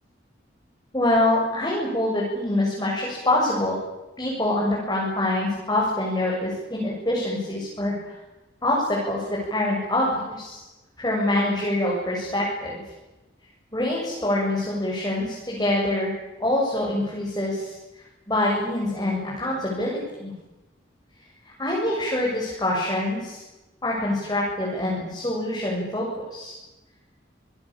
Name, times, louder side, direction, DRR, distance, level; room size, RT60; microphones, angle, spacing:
voice 1, 0.9-3.8 4.2-8.1 8.6-10.6 11.0-12.8 13.7-16.1 16.4-17.8 18.3-20.3 21.4-23.4 23.8-26.6, left 1 dB, 20° left, -4 dB, 7.7 m, -25 dB
27.5 x 20.5 x 9.0 m, 1.1 s
head